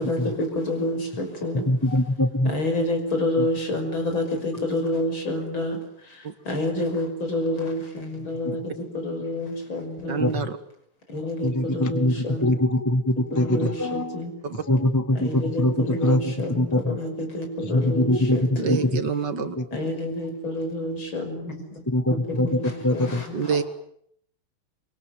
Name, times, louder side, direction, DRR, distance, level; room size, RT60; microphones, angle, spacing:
voice 1, 0.0-1.6 2.5-10.3 11.1-12.5 13.3-14.3 15.1-18.8 19.7-21.8 22.1-23.6, left 1 dB, 65° left, 5 dB, 6.7 m, -29 dB
voice 2, 1.7-2.5 3.4-3.5 10.2-10.3 11.4-14.1 14.7-16.8 17.7-18.4 21.9-23.2, left 1 dB, 10° left, 10 dB, 1.3 m, -23 dB
voice 3, 10.1-10.6 13.6-13.7 14.4-14.6 18.6-19.6 23.3-23.6, right 6 dB, 55° right, 10 dB, 2.2 m, -27 dB
25.0 x 23.5 x 9.3 m, 0.71 s
omnidirectional pair, 2.3 m